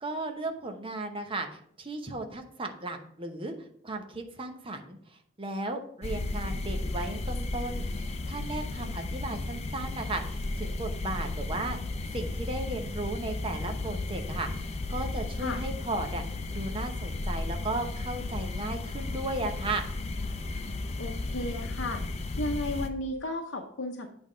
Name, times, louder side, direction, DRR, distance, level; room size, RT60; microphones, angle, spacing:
voice 1, 0.0-3.5 3.8-5.0 5.4-11.8 12.1-16.2 16.5-19.9, right 2 dB, 30° right, 4 dB, 0.8 m, -35 dB
sound 1, 6.0-22.9, left 2 dB, 35° left, 0.5 m, -34 dB
voice 2, 21.0-22.0 22.4-24.1, left 1 dB, 70° left, 2 dB, 0.7 m, -34 dB
8.6 x 3.5 x 5.0 m, 0.65 s
head